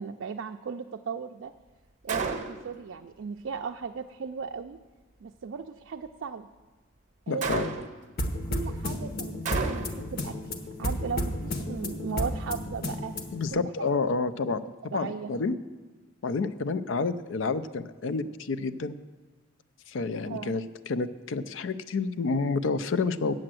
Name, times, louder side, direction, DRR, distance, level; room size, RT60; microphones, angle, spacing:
voice 1, 0.0-1.5 2.0-4.8 5.2-6.5 7.3-7.8 8.4-10.4 10.8-13.2 13.5-13.9 14.9-15.3 20.3-20.6, right 5 dB, 70° right, 5 dB, 0.4 m, -36 dB
Gunshot gunfire, 2.1-2.8 7.4-8.1 9.5-10.1, right 4 dB, 40° right, 0.8 m, -32 dB
voice 2, 7.3-7.7 13.3-14.6 14.9-15.6 16.2-19.0 19.9-23.3, left 4 dB, 70° left, 14 dB, 0.4 m, -29 dB
sound 1, 8.2-13.5, left 1 dB, 55° left, 1.1 m, -32 dB
8.7 x 7.7 x 7.6 m, 1.3 s
head